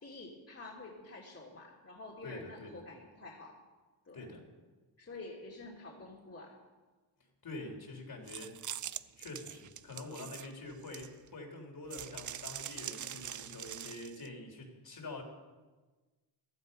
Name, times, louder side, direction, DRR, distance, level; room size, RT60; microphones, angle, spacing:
voice 1, 0.0-3.5 4.1-4.3 5.0-6.6, left 2 dB, 30° left, -2 dB, 2.9 m, -48 dB
voice 2, 2.2-2.8 4.1-4.4 7.4-8.6 9.2-15.2, left 2 dB, 50° left, 2 dB, 3.9 m, -46 dB
sound 1, 8.3-11.3 11.9-14.3, right 10 dB, 40° right, 0.6 m, -43 dB
15.5 x 11.5 x 5.5 m, 1.3 s
cardioid pair, 70°, 48 cm